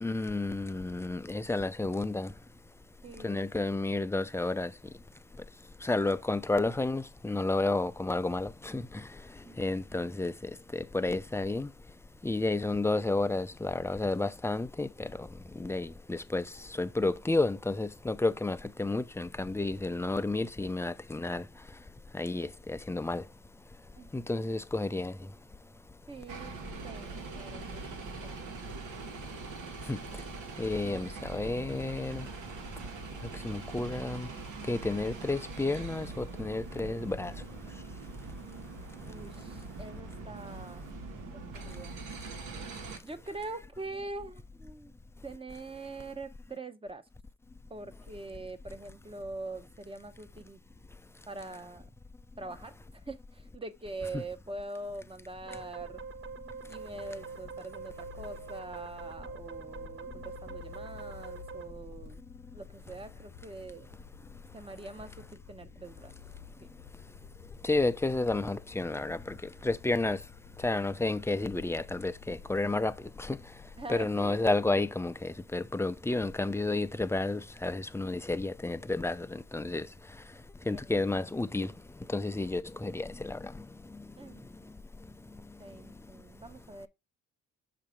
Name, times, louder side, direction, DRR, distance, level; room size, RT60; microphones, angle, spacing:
voice 1, 0.0-2.3 3.2-4.7 5.8-9.0 9.6-10.3 10.7-11.7 12.2-15.3 15.6-16.4 16.8-21.4 22.1-23.2 24.1-25.1 29.9-30.0 30.6-32.3 33.4-34.3 34.7-37.3 67.6-69.3 69.6-70.2 70.6-73.4 73.9-79.9 80.7-81.7 82.1-83.5, left 2 dB, 10° left, 0.5 m, -31 dB
voice 2, 3.0-3.5 9.4-9.6 23.9-24.1 26.1-26.5 26.8-28.5 39.1-40.8 41.1-41.2 41.6-41.9 43.0-44.9 45.2-47.0 47.7-50.6 51.3-51.9 52.4-56.0 56.7-62.2 62.5-63.9 64.5-66.1 73.8-74.4 80.7-81.0 84.2-84.5 85.6-86.9, right 2 dB, 20° right, 1.0 m, -43 dB
sound 1, 26.3-43.0, right 3 dB, 80° right, 1.6 m, -42 dB
sound 2, 55.5-61.7, right 5 dB, 40° right, 0.8 m, -44 dB
sound 3, 56.8-74.6, left 10 dB, 85° left, 0.9 m, -53 dB
6.7 x 2.8 x 5.1 m
cardioid pair, 90°, 30 cm